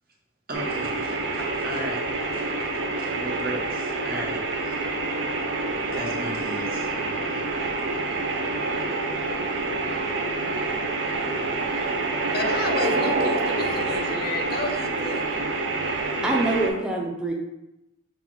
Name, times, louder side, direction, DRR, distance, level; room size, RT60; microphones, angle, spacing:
voice 1, 0.5-2.0 2.3-4.9 5.7-7.6, right 1 dB, 55° right, -1 dB, 0.8 m, -37 dB
sound 1, 0.5-16.7, right 3 dB, 75° right, 0.5 m, -27 dB
voice 2, 12.2-15.2, left 3 dB, 55° left, 3 dB, 0.4 m, -31 dB
voice 3, 16.2-17.3, right 2 dB, 5° right, -1 dB, 0.5 m, -25 dB
5.3 x 2.5 x 3.0 m, 0.94 s
head